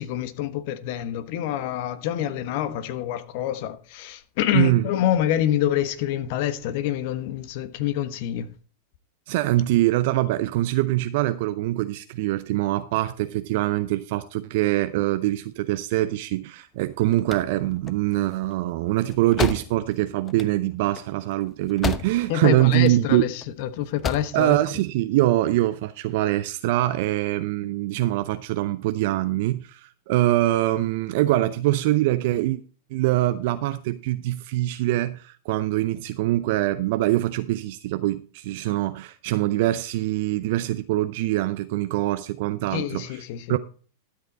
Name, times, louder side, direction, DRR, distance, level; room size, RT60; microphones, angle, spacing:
voice 1, 0.0-8.5 22.3-24.6 42.7-43.6, left 11 dB, 55° left, 1.2 m, -26 dB
voice 2, 4.5-4.9 9.3-23.2 24.3-32.6 32.9-43.2 43.5-43.6, right 16 dB, 55° right, 0.6 m, -23 dB
sound 1, 16.8-22.4 22.7-23.5 23.8-24.4, left 6 dB, 25° left, 0.9 m, -32 dB
12.5 x 8.0 x 4.1 m
figure-of-eight pair, 95°, 0 cm